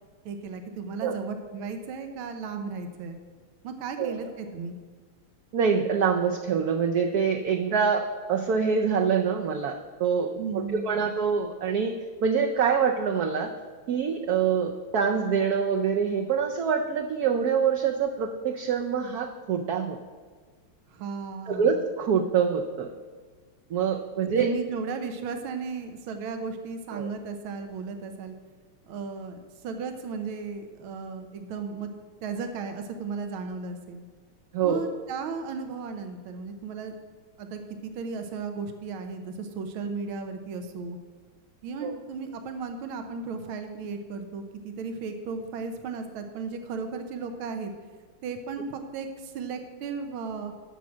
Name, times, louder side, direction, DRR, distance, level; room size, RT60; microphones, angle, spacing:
voice 1, 0.3-3.2 3.6-4.8 10.4-11.0 20.9-21.7 24.4-28.3 28.8-31.9 32.2-34.0 34.6-36.9 37.4-41.0 41.6-47.7 48.2-50.5, right 4 dB, 85° right, 6 dB, 1.7 m, -35 dB
voice 2, 5.5-11.9 12.2-13.5 13.9-20.0 21.5-22.9 23.7-24.5 26.9-27.1 34.5-34.8 41.8-41.9, right 6 dB, 65° right, 3 dB, 1.0 m, -25 dB
9.3 x 6.3 x 7.2 m, 1.5 s
omnidirectional pair, 2.2 m